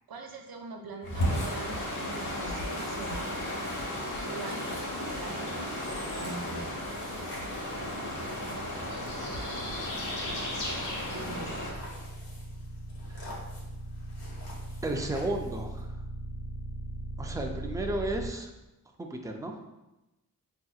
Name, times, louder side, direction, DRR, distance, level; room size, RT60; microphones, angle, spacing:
voice 1, 0.1-3.3 4.2-4.7 5.1-5.8 6.1-6.8 11.1-11.6, right 4 dB, 90° right, 3 dB, 0.6 m, -42 dB
sound 1, 1.0-11.7, left 1 dB, 60° left, 1.1 m, -34 dB
sound 2, 4.1-15.8, left 1 dB, 90° left, 1.1 m, -50 dB
sound 3, 5.4-18.3, right 1 dB, 45° right, 0.9 m, -41 dB
voice 2, 14.8-15.9 17.2-18.5 19.0-19.5, right 1 dB, 10° right, 3 dB, 0.4 m, -33 dB
5.4 x 2.8 x 2.3 m, 0.98 s
wide cardioid pair, 75°, 35 cm